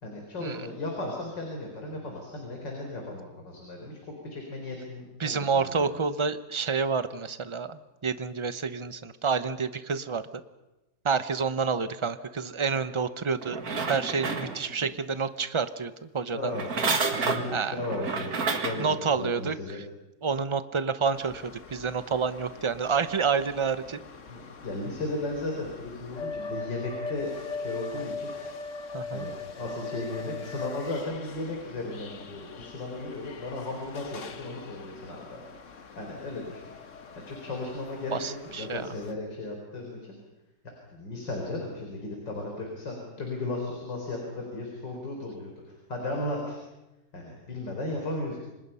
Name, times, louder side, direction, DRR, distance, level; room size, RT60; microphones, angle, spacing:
voice 1, 0.0-4.0 4.2-6.0 16.3-16.7 17.1-19.8 24.3-28.3 29.1-35.4 36.0-36.7 37.2-40.2 40.6-46.6 47.1-48.4, left 2 dB, 85° left, 1 dB, 4.7 m, -35 dB
voice 2, 5.2-10.2 11.0-13.6 13.9-16.5 17.5-17.7 18.8-19.8 20.2-24.0 28.9-29.3 38.1-38.9, right 5 dB, 30° right, 12 dB, 0.5 m, -29 dB
sound 1, 13.4-14.9 16.5-18.9 19.5-19.6, right 4 dB, 55° right, 2.4 m, -30 dB
sound 2, 21.1-39.1, left 4 dB, 45° left, 1.5 m, -41 dB
30.0 x 26.0 x 5.6 m, 1.0 s
omnidirectional pair, 1.9 m